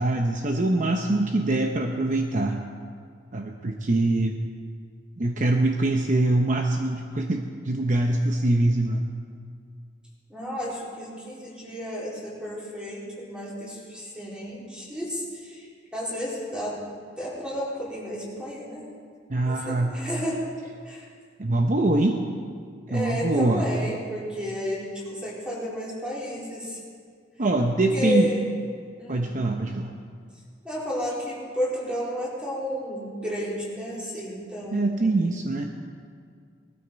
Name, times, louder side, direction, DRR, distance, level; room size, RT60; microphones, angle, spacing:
voice 1, 0.0-2.7 3.3-4.4 5.2-9.0 19.3-19.9 21.4-22.2 22.9-23.7 27.4-28.3 29.1-29.9 34.7-35.7, right 2 dB, 45° right, 3 dB, 0.8 m, -23 dB
voice 2, 10.3-15.6 15.9-16.8 17.2-18.9 19.4-20.4 20.8-21.1 22.9-26.8 27.9-28.4 29.0-29.3 30.6-35.3, equal, 5° right, -6 dB, 4.0 m, -32 dB
20.0 x 13.0 x 4.6 m, 2.1 s
head